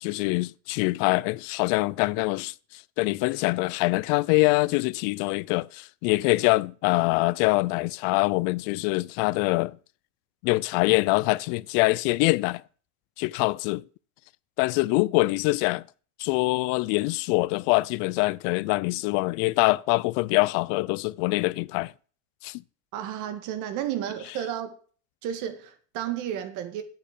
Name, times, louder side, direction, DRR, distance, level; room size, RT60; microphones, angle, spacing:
voice 1, 0.0-9.8 10.4-12.6 13.2-13.8 14.6-15.8 16.2-21.9 22.4-22.6, left 23 dB, 85° left, 0.5 m, -24 dB
voice 2, 22.9-24.7 25.2-26.8, right 10 dB, 55° right, 1.8 m, -32 dB
8.7 x 8.1 x 6.6 m
cardioid pair, 175°, 37 cm